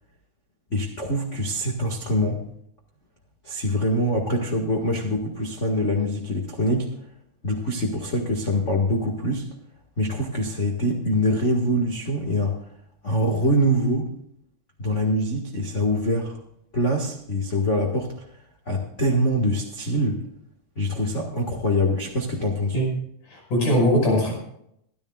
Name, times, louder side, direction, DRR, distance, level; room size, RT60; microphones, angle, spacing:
voice 1, 0.7-2.4 3.4-6.9 7.4-9.4 10.0-12.6 13.0-14.1 14.8-16.3 16.7-18.1 18.6-20.2 20.7-22.7, equal, 30° left, 1 dB, 1.4 m, -24 dB
voice 2, 23.3-24.3, equal, 65° left, 0 dB, 7.2 m, -21 dB
24.0 x 12.5 x 2.4 m, 0.74 s
omnidirectional pair, 4.0 m